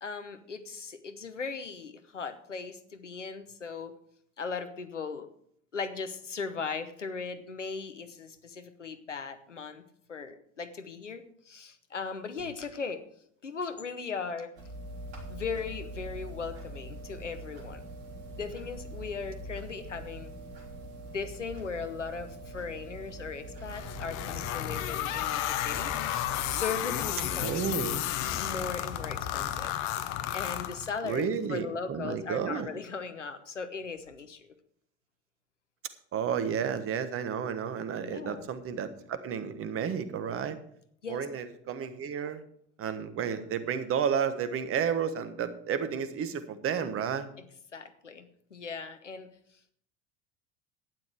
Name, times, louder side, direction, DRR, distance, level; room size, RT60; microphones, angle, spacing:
voice 1, 0.0-3.9 4.4-5.3 5.7-9.8 10.1-13.0 13.4-14.5 15.3-17.8 18.3-20.3 21.1-27.7 28.4-29.7 30.0-34.5 38.0-38.5 41.0-41.3 47.4-47.5 47.7-49.3, left 5 dB, 85° left, 10 dB, 1.0 m, -38 dB
sound 1, 14.6-29.7, right 1 dB, 65° right, 3.2 m, -43 dB
sound 2, 23.7-31.2, left 12 dB, 50° left, 0.9 m, -33 dB
voice 2, 27.4-28.0 31.0-32.7 36.1-40.6 41.1-42.4 42.8-47.3, right 7 dB, 40° right, 11 dB, 1.3 m, -32 dB
12.0 x 9.7 x 4.8 m, 0.66 s
figure-of-eight pair, 65°, 35 cm